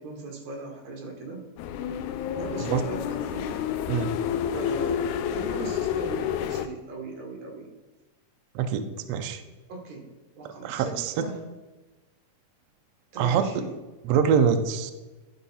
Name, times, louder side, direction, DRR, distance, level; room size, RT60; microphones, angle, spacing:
voice 1, 0.0-1.4 2.3-3.5 4.5-5.0 5.3-7.7 9.7-10.1 10.3-11.4 13.1-13.7, right 3 dB, 65° right, 1 dB, 2.7 m, -39 dB
sound 1, 1.6-6.7, left 9 dB, 80° left, 1.8 m, -29 dB
voice 2, 8.5-9.4 10.6-11.2 13.2-13.4 14.0-14.9, right 7 dB, 90° right, 8 dB, 1.4 m, -24 dB
11.5 x 4.5 x 4.2 m, 1.2 s
omnidirectional pair, 3.7 m